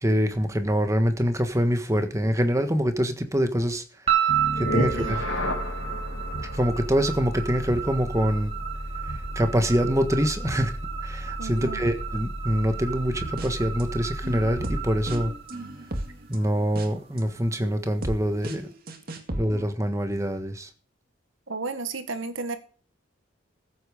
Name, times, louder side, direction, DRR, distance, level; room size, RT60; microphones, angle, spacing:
voice 1, 0.0-3.8 4.6-5.2 6.5-8.5 9.3-10.7 11.0-15.3 16.3-18.7 19.4-20.7, equal, 15° right, 1.5 m, -25 dB
sound 1, 4.1-16.4, right 10 dB, 30° right, 3.4 m, -33 dB
sound 2, 4.3-15.4, left 1 dB, 85° left, 3.0 m, -33 dB
voice 2, 4.7-5.2 11.4-11.8 21.5-22.6, right 3 dB, 80° right, 1.8 m, -33 dB
sound 3, 13.1-13.8 14.2-19.7, right 1 dB, 50° right, 2.1 m, -35 dB
14.5 x 8.5 x 5.2 m
head